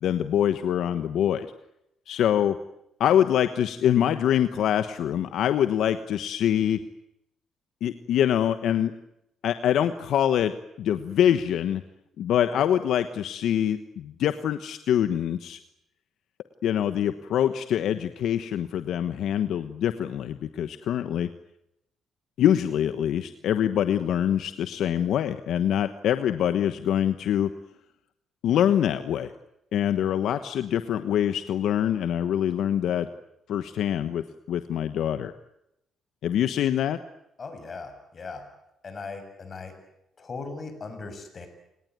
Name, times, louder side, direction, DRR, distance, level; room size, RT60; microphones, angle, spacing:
voice 1, 0.0-1.5 2.1-2.6 3.0-6.8 7.8-8.9 9.4-10.5 10.8-11.8 12.2-15.6 16.6-21.3 22.4-27.5 28.4-29.3 29.7-33.1 33.5-35.3 36.2-37.0, left 10 dB, 75° left, 10 dB, 1.2 m, -24 dB
voice 2, 37.4-38.4 38.8-39.7 40.2-41.5, left 4 dB, 40° left, 8 dB, 7.2 m, -38 dB
29.5 x 19.0 x 9.6 m, 0.84 s
cardioid pair, 90°, 0 cm